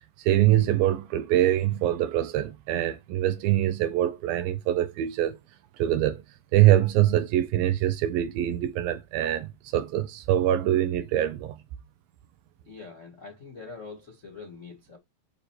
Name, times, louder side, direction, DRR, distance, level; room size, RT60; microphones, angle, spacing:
voice 1, 0.2-5.4 5.8-6.2 6.5-11.6, right 13 dB, 80° right, 2.4 m, -24 dB
voice 2, 12.6-15.0, left 4 dB, 80° left, 0.6 m, -44 dB
8.9 x 3.2 x 4.3 m
omnidirectional pair, 4.3 m